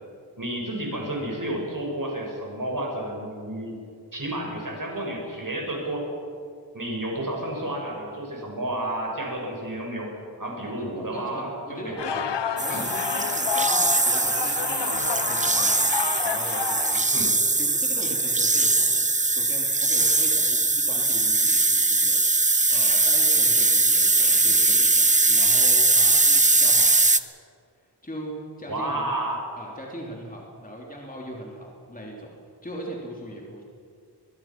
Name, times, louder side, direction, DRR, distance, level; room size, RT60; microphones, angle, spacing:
voice 1, 0.4-3.8 4.1-6.1 6.7-10.1 10.4-12.2 12.7-12.8 17.1-17.3 28.7-29.5, right 1 dB, 50° right, 0 dB, 6.0 m, -31 dB
voice 2, 10.5-12.2 12.6-17.0 17.5-19.0 19.3-22.2 22.7-26.9 28.0-29.3 29.6-32.3 32.6-33.6, right 1 dB, 20° left, -1 dB, 3.1 m, -39 dB
sound 1, 12.0-17.3, left 8 dB, 80° left, 0.8 m, -30 dB
sound 2, 12.6-27.2, right 3 dB, 20° right, 0.7 m, -21 dB
24.0 x 21.5 x 6.0 m, 2.3 s
wide cardioid pair, 80°, 42 cm